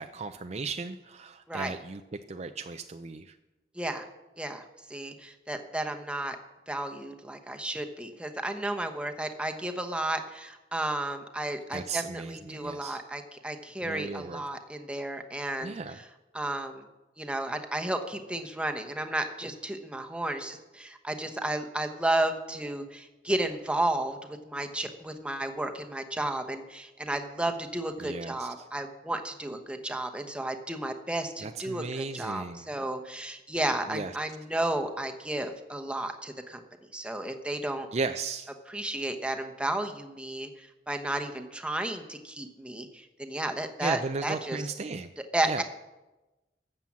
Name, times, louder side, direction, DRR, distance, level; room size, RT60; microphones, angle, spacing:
voice 1, 0.0-3.4 11.7-13.0 13.8-14.4 15.6-16.0 28.0-28.7 31.4-32.7 33.9-34.2 37.9-38.5 43.8-45.1 45.4-45.6, right 4 dB, 40° right, 8 dB, 0.5 m, -36 dB
voice 2, 4.4-6.4 6.7-15.7 16.3-16.8 17.2-36.6 36.9-37.9 38.7-44.6 45.3-45.6, right 1 dB, 5° right, 5 dB, 0.9 m, -33 dB
13.0 x 7.6 x 7.4 m, 1.1 s
head